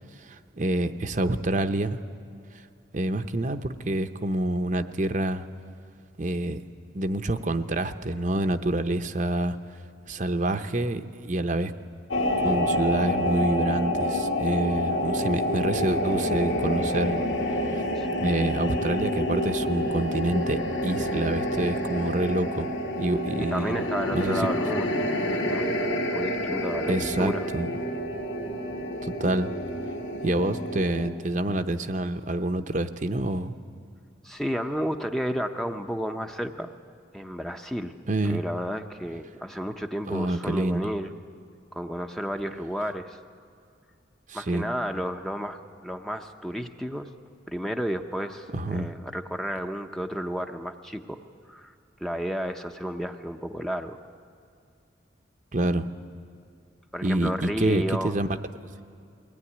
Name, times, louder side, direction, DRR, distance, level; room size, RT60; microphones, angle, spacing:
voice 1, 0.2-2.0 2.9-5.5 6.2-6.6 6.9-9.6 10.1-11.7 12.4-17.2 17.5-17.8 18.2-22.7 23.0-23.8 24.1-24.5 26.9-27.7 29.0-29.5 30.2-33.6 38.1-38.4 40.1-40.9 44.3-44.7 48.5-48.9 55.5-55.9 57.0-58.3, right 1 dB, 40° right, 8 dB, 0.8 m, -27 dB
sound 1, 12.1-31.1, equal, 70° left, 2.3 m, -28 dB
voice 2, 17.9-18.3 23.4-27.5 34.2-36.7 37.1-37.9 38.2-41.1 41.7-43.2 44.3-47.1 47.5-51.2 51.5-51.7 52.0-54.0 56.9-58.2, equal, ahead, 5 dB, 0.7 m, -32 dB
22.0 x 18.0 x 9.9 m, 2.5 s
head